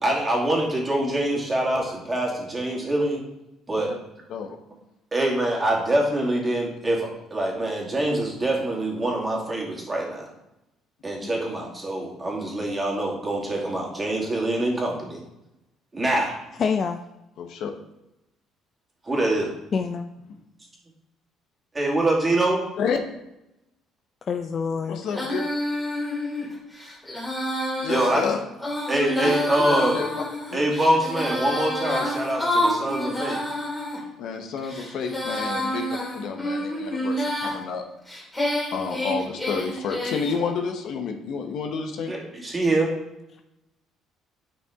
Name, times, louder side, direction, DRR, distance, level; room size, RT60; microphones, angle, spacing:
voice 1, 0.0-3.2 3.7-3.9 5.1-10.2 11.0-15.2 15.9-16.4 19.0-19.5 21.7-22.7 27.9-28.2 28.9-30.0 30.5-33.4 42.1-42.9, right 1 dB, 20° right, -2 dB, 2.4 m, -24 dB
voice 2, 16.6-17.0 19.7-20.1 24.3-25.0, left 5 dB, 40° left, 7 dB, 0.4 m, -26 dB
voice 3, 17.4-17.7 22.8-23.0 24.9-25.4 27.8-28.4 29.2-29.3 29.7-30.1 30.5-30.6 34.2-35.8 36.1-37.8 38.7-42.2, left 5 dB, 65° left, 4 dB, 1.1 m, -30 dB
Female singing, 25.1-34.0 34.6-37.6 38.1-40.4, left 1 dB, 5° left, 2.8 m, -28 dB
9.9 x 5.5 x 3.7 m, 0.90 s
cardioid pair, 125°, 0 cm